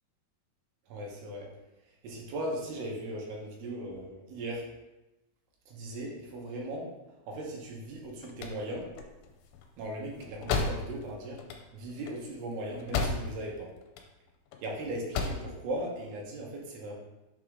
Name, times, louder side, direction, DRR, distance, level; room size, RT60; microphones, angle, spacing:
voice 1, 0.9-1.5 2.0-4.7 5.7-7.0 7.2-8.9 9.8-11.4 11.7-13.7 14.6-16.9, right 1 dB, 75° right, -1 dB, 3.1 m, -38 dB
sound 1, 7.9-13.6 13.8-14.6 14.9-15.5, left 4 dB, 90° left, 2.8 m, -34 dB
6.8 x 3.7 x 4.8 m, 0.99 s
omnidirectional pair, 4.8 m